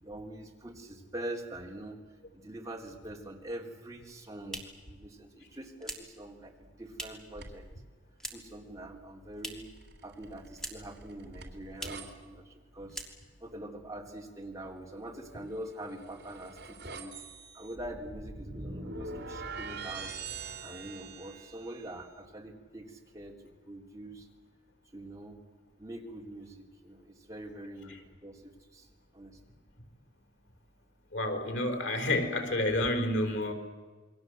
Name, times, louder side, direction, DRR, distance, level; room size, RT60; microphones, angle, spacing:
voice 1, 0.0-2.0 2.3-7.7 8.3-9.7 10.0-13.0 13.4-17.1 17.5-20.1 20.6-24.3 24.9-25.4 25.8-29.4, right 1 dB, 20° right, 0 dB, 3.6 m, -44 dB
sound 1, 4.1-7.4 7.7-8.6 8.9-9.8 10.1-11.0 11.3-11.4 11.7-12.1 12.5-12.6 12.9-13.5, equal, 5° left, 3.0 m, -44 dB
sound 2, 7.3-7.8 9.7-12.1 15.6-22.0, right 3 dB, 60° right, 3.3 m, -44 dB
voice 2, 31.1-33.5, left 1 dB, 85° left, 6 dB, 4.4 m, -29 dB
28.0 x 22.5 x 8.0 m, 1.4 s
head